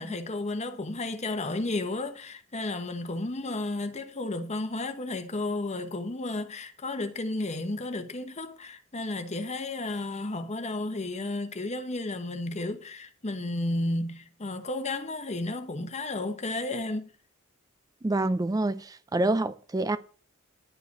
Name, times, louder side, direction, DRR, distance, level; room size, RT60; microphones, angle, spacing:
voice 1, 0.0-17.1, left 2 dB, 35° left, 1.1 m, -33 dB
voice 2, 18.0-20.0, right 2 dB, 20° right, 0.4 m, -27 dB
11.0 x 4.9 x 8.0 m
head